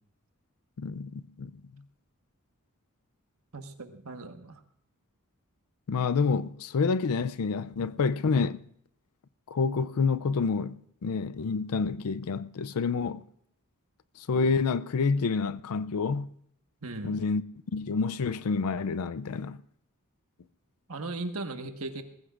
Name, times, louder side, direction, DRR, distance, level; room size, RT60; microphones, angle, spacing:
voice 1, 0.8-1.5 5.9-8.7 9.5-13.2 14.2-16.3 17.0-17.4 17.7-19.6, left 5 dB, 80° left, 0.5 m, -28 dB
voice 2, 3.5-4.6 16.8-17.1 20.9-22.0, right 2 dB, 70° right, 1.4 m, -37 dB
21.0 x 15.0 x 2.5 m
head